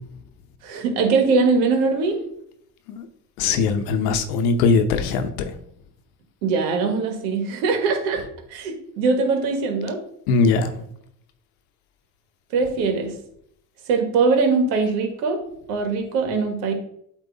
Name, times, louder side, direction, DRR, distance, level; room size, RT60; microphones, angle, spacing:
voice 1, 0.6-2.2 6.4-8.2 8.5-10.0 12.5-13.1 13.9-15.4 15.7-16.7, right 4 dB, 90° right, 4 dB, 1.5 m, -21 dB
voice 2, 3.4-5.5 10.3-10.7, left 4 dB, 90° left, 8 dB, 0.9 m, -20 dB
8.3 x 3.0 x 4.0 m, 0.70 s
supercardioid pair, 90°, 43 cm